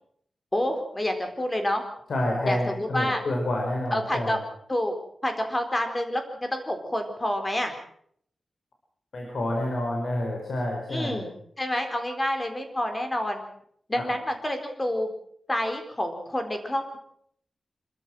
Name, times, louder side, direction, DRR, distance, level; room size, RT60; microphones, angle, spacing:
voice 1, 0.5-1.8 2.5-3.2 3.9-4.4 4.7-4.9 5.2-7.7 10.9-11.3 11.6-13.4 13.9-15.1 15.5-17.0, left 1 dB, 20° left, 6 dB, 4.1 m, -28 dB
voice 2, 2.1-4.4 9.1-11.2 14.0-14.1, left 1 dB, 65° left, 0 dB, 5.0 m, -28 dB
26.0 x 14.0 x 7.8 m, 0.66 s
wide cardioid pair, 115°, 0 cm